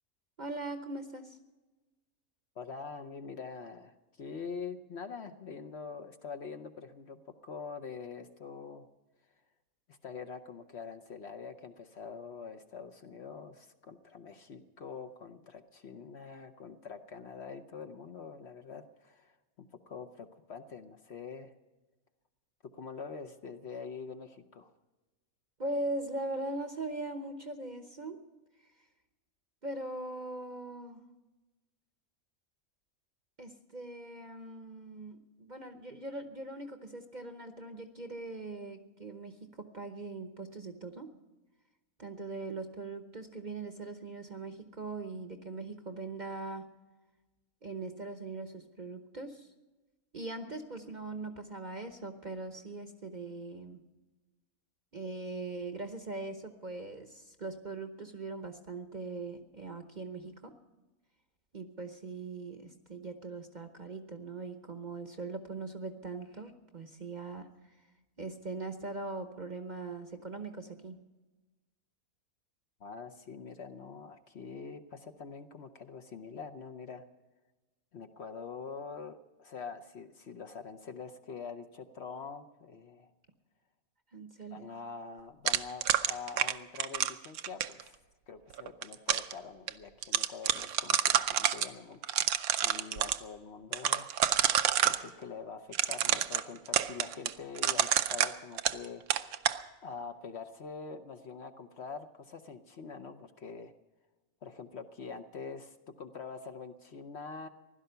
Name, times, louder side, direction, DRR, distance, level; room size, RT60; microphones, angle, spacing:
voice 1, 0.4-1.4 25.6-28.2 29.6-31.1 33.4-41.2 42.0-46.7 47.6-49.5 50.1-53.8 54.9-60.5 61.5-67.8 68.2-71.0 84.1-84.7, right 2 dB, 40° right, 7 dB, 0.9 m, -41 dB
voice 2, 2.6-8.8 9.9-21.5 22.7-24.7 72.8-77.0 77.9-83.1 84.4-88.0 88.3-92.3 92.6-99.0 99.8-103.7 104.4-107.5, left 5 dB, 55° left, 8 dB, 1.0 m, -45 dB
sound 1, 85.5-87.8 88.6-89.3 89.7-89.8 90.0-91.7 92.0-93.2 93.7-95.0 95.7-98.9 99.1-99.6, right 10 dB, 80° right, 1.2 m, -28 dB
16.0 x 12.0 x 6.7 m, 1.2 s
omnidirectional pair, 1.5 m